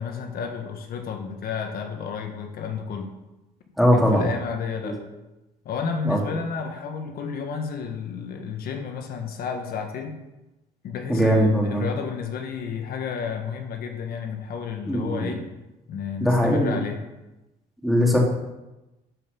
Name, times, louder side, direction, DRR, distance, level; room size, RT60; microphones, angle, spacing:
voice 1, 0.0-3.2 3.9-5.0 5.6-10.2 10.8-15.5 15.9-17.0, left 6 dB, 65° left, 4 dB, 1.5 m, -31 dB
voice 2, 3.8-4.3 4.8-4.9 6.0-6.2 11.1-11.8 14.9-15.3 16.2-16.7 17.8-18.2, equal, ahead, -1 dB, 2.8 m, -20 dB
12.0 x 5.5 x 6.9 m, 1.0 s
cardioid pair, 110°, 17 cm